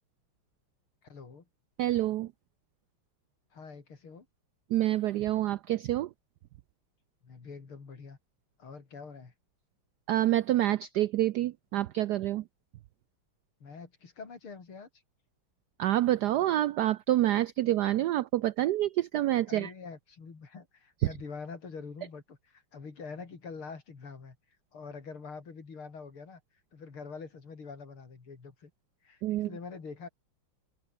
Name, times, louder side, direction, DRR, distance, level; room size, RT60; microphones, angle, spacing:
voice 1, 1.0-1.4 3.5-4.3 7.2-8.2 8.6-9.3 13.6-14.9 19.5-24.4 24.7-26.4 26.7-28.7 29.0-30.1, left 5 dB, 75° left, 4.3 m, -45 dB
voice 2, 1.8-2.3 4.7-6.1 10.1-12.4 15.8-19.7 29.2-29.5, right 14 dB, 80° right, 0.9 m, -27 dB
open air
omnidirectional pair, 2.3 m